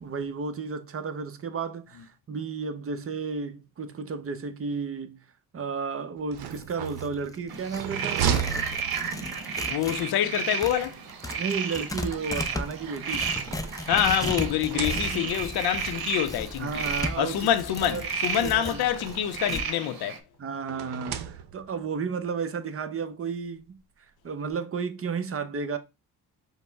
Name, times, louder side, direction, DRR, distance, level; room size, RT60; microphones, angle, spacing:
voice 1, 0.0-5.2 5.5-8.5 11.4-13.4 14.9-15.3 16.6-17.5 17.8-18.1 18.4-18.8 20.4-23.8 24.2-25.8, right 5 dB, 35° right, 0.7 m, -33 dB
sound 1, 6.2-9.5 10.8-11.9 12.8-14.2 14.5-15.5 16.4-16.5 16.8-16.9 18.1-19.5 20.7-21.8, right 9 dB, 85° right, 0.7 m, -35 dB
Tearing, 6.4-10.1 10.3-19.7, left 2 dB, 10° left, 0.4 m, -36 dB
sound 2, 7.5-20.2, right 6 dB, 65° right, 0.9 m, -33 dB
voice 2, 9.7-11.0 13.9-16.8 17.2-20.2, left 11 dB, 75° left, 0.5 m, -26 dB
5.2 x 2.1 x 4.5 m
cardioid pair, 95°, 38 cm